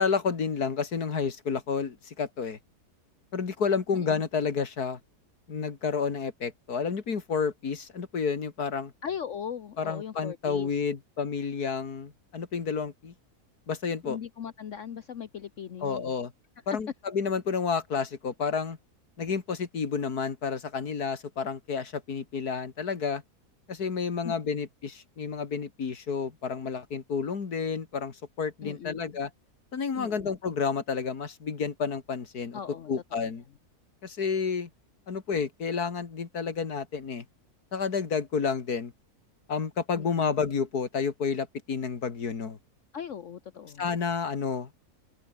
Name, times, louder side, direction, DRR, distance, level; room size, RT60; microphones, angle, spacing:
voice 1, 0.0-2.6 3.3-5.0 5.5-8.9 9.8-13.1 13.7-14.2 15.8-16.3 16.7-18.8 19.2-23.2 23.7-29.3 29.7-32.6 32.9-33.4 34.0-34.7 35.1-37.2 37.7-38.9 39.5-42.6 43.8-44.7, left 5 dB, 80° left, 2.7 m, -30 dB
voice 2, 9.0-10.7 14.0-16.1 24.2-24.3 28.6-29.2 29.9-30.3 32.5-32.9 33.2-33.3 39.9-40.3 42.9-43.9, left 8 dB, 55° left, 1.2 m, -39 dB
omnidirectional pair, 1.6 m